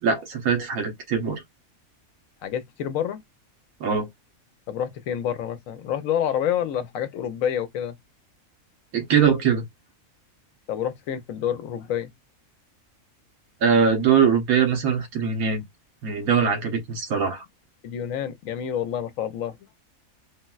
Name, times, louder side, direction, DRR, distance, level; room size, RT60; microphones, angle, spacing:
voice 1, 0.0-1.4 3.8-4.1 8.9-9.6 13.6-15.6 16.0-17.4, right 6 dB, 85° right, 1.3 m, -22 dB
voice 2, 2.4-3.2 4.7-8.0 10.7-12.1 17.8-19.6, left 9 dB, 75° left, 0.9 m, -28 dB
3.9 x 2.1 x 2.2 m
omnidirectional pair, 1.5 m